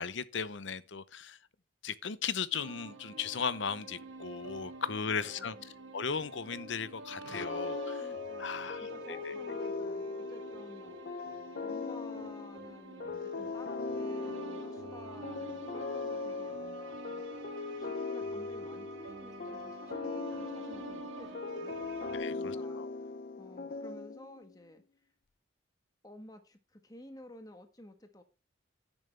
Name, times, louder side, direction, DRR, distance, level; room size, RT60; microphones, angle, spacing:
voice 1, 0.0-1.4 1.8-8.0 8.4-9.3 22.1-22.9, left 6 dB, 75° left, 0.8 m, -37 dB
sound 1, 2.5-22.2, right 3 dB, 85° right, 2.2 m, -47 dB
voice 2, 4.9-5.6 8.0-17.2 17.8-21.8 22.1-25.1 26.0-28.2, left 1 dB, 20° left, 1.3 m, -53 dB
sound 2, 7.3-24.5, left 4 dB, 50° left, 0.5 m, -39 dB
10.5 x 10.5 x 3.4 m
head